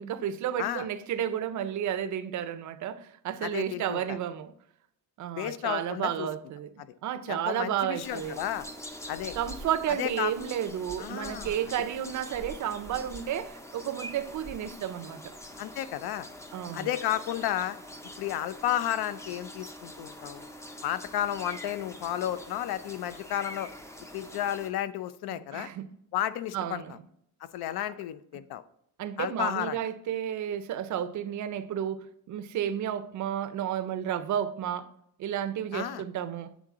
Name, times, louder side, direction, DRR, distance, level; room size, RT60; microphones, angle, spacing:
voice 1, 0.0-4.5 5.2-6.7 7.0-8.4 9.4-15.3 16.5-16.9 25.3-25.9 26.5-26.9 29.0-34.9 35.2-36.5, right 10 dB, 50° right, 0.5 m, -32 dB
voice 2, 3.4-4.2 5.4-6.3 7.3-8.7 9.1-9.4 10.0-10.3 11.0-11.6 15.6-16.3 16.7-17.8 18.2-20.5 20.8-23.7 24.1-25.7 26.1-26.8 27.5-28.6 29.2-29.8 35.7-36.0, left 12 dB, 70° left, 0.5 m, -32 dB
sound 1, 8.0-24.7, equal, 10° left, 0.4 m, -44 dB
8.3 x 3.7 x 3.6 m
cardioid pair, 150°, 39 cm